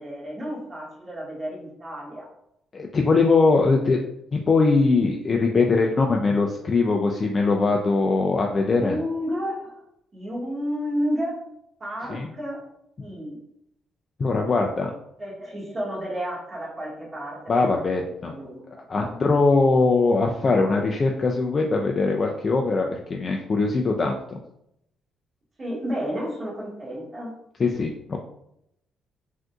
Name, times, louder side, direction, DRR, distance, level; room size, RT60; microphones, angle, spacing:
voice 1, 0.0-2.3 8.7-9.7 10.1-11.4 11.8-12.6 13.0-13.4 15.2-19.1 25.6-27.3, equal, 35° right, -5 dB, 1.4 m, -31 dB
voice 2, 2.7-4.0 4.3-9.0 12.1-12.3 14.2-14.9 17.5-18.3 18.9-24.2 27.6-28.2, left 3 dB, 40° left, 1 dB, 0.3 m, -21 dB
3.6 x 2.6 x 2.3 m, 0.77 s
cardioid pair, 90°, 0 cm